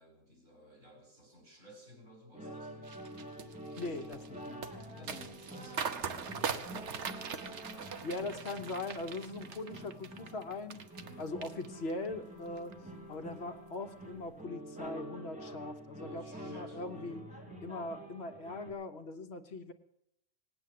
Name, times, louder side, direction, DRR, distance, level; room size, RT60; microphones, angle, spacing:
voice 1, 0.0-3.1 3.8-7.4 7.7-8.1 9.3-9.6 11.0-11.3 16.0-17.1, equal, 80° right, 3 dB, 4.5 m, -58 dB
sound 1, 2.3-18.7, right 1 dB, 5° right, 3.1 m, -47 dB
sound 2, 2.9-11.1 11.4-12.1 12.5-12.7, right 6 dB, 65° right, 1.2 m, -41 dB
voice 2, 3.8-4.7 5.0-5.7 8.0-12.8 13.1-17.2 17.6-19.7, left 2 dB, 55° left, 7 dB, 1.3 m, -41 dB
19.0 x 9.1 x 7.6 m, 0.77 s
omnidirectional pair, 1.3 m